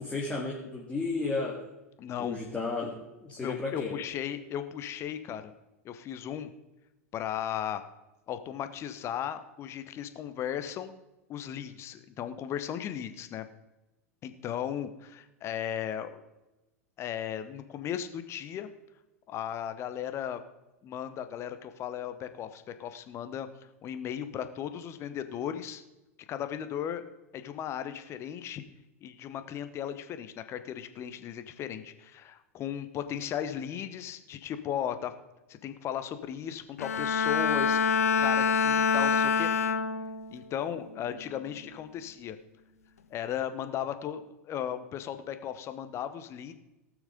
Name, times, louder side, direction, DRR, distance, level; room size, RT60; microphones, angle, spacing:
voice 1, 0.0-1.6 2.2-4.0, left 3 dB, 15° left, -3 dB, 2.1 m, -33 dB
voice 2, 2.0-2.4 3.4-5.5 5.8-6.5 7.1-7.8 8.3-10.9 11.3-13.5 14.2-16.2 17.0-18.7 19.3-20.4 20.8-23.5 23.8-25.8 26.3-27.0 27.3-28.6 29.0-35.1 35.5-37.8 38.2-39.5 40.3-42.4 43.1-46.5, left 9 dB, 35° left, 10 dB, 1.0 m, -36 dB
Bowed string instrument, 36.8-40.4 40.8-41.2, left 5 dB, 75° left, 0.7 m, -26 dB
18.0 x 6.3 x 5.2 m, 1.0 s
figure-of-eight pair, 90°, 8 cm